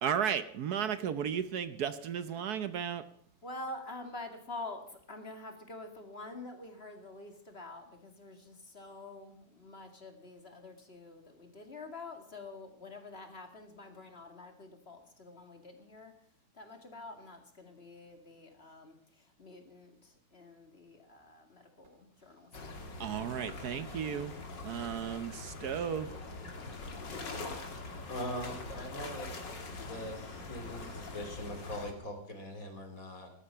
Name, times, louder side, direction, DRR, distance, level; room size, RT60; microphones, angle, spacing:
voice 1, 0.0-3.0 23.0-24.3 24.6-26.1, right 8 dB, 65° right, 12 dB, 1.2 m, -34 dB
voice 2, 3.4-16.1 16.5-23.3, left 2 dB, 35° left, 5 dB, 2.3 m, -47 dB
sound 1, 22.5-31.9, left 3 dB, 90° left, 2.9 m, -43 dB
voice 3, 28.1-29.4 29.7-33.3, equal, 50° left, 4 dB, 3.5 m, -41 dB
19.5 x 12.5 x 5.6 m, 0.64 s
omnidirectional pair, 1.9 m